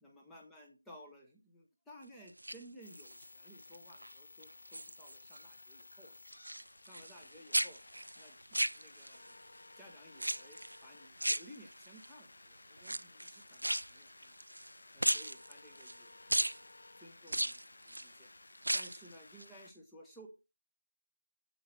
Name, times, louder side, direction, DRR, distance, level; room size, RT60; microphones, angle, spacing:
voice 1, 0.0-6.2 6.8-7.8 8.2-9.3 9.8-14.4 14.9-16.6 17.0-18.3 18.7-20.3, equal, ahead, -3 dB, 0.9 m, -57 dB
sound 1, 2.3-3.2 3.7-4.1 4.4-5.5 5.7-7.3 7.5-9.3 10.2-10.8 11.2-12.1 12.8-14.7 15.0-16.0 16.3-16.6 17.3-18.1 18.5-19.1 19.4-19.5, right 1 dB, 90° right, 0.5 m, -36 dB
sound 2, 2.8-19.7, left 2 dB, 45° left, 0.7 m, -57 dB
7.8 x 6.5 x 3.3 m, 0.28 s
figure-of-eight pair, 175°, 0 cm